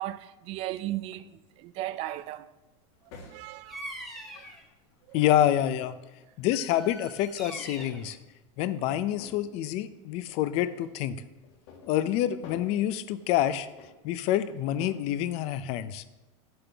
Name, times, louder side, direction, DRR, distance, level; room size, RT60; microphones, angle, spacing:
voice 1, 0.0-2.5 3.2-3.8 4.4-4.5 5.1-5.2, right 14 dB, 35° right, 0.4 m, -36 dB
sound 1, 1.5-1.7 3.1-4.6 5.0-6.1 7.2-8.2 8.9-9.7 10.2-10.9 11.4-12.8 13.2-15.0, left 4 dB, 65° left, 2.1 m, -50 dB
Bird vocalization bird call bird song, 3.6-4.6 6.5-8.1, right 1 dB, ahead, 1.1 m, -43 dB
voice 2, 5.1-6.0 6.4-8.2 8.6-11.2 11.9-13.7 14.0-16.0, left 12 dB, 40° left, 0.5 m, -27 dB
11.5 x 7.7 x 3.4 m
supercardioid pair, 160°, 16 cm